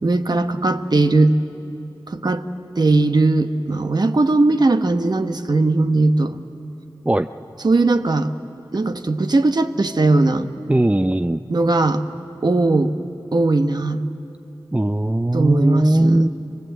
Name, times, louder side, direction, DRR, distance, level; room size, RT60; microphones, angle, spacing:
voice 1, 0.0-1.3 2.1-2.4 2.8-6.4 7.6-8.3 8.7-10.5 11.5-12.0 12.4-13.0 13.3-14.0 15.3-16.3, right 2 dB, 50° right, 7 dB, 1.1 m, -18 dB
voice 2, 10.7-11.4 14.7-16.3, right 1 dB, 15° right, 9 dB, 0.5 m, -18 dB
25.0 x 19.0 x 8.0 m, 2.9 s
cardioid pair, 40°, 9 cm